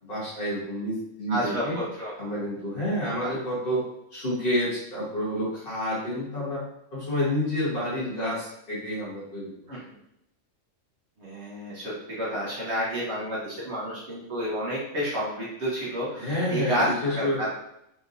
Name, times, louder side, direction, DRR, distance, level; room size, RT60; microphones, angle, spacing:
voice 1, 0.0-1.8 2.2-3.8 4.1-6.6 6.9-9.5 16.2-17.5, equal, 40° left, -10 dB, 1.7 m, -29 dB
voice 2, 1.3-2.1 3.2-3.3 9.7-9.8 11.2-17.5, equal, 60° right, -8 dB, 1.5 m, -30 dB
4.4 x 3.4 x 2.7 m, 0.80 s
omnidirectional pair, 1.3 m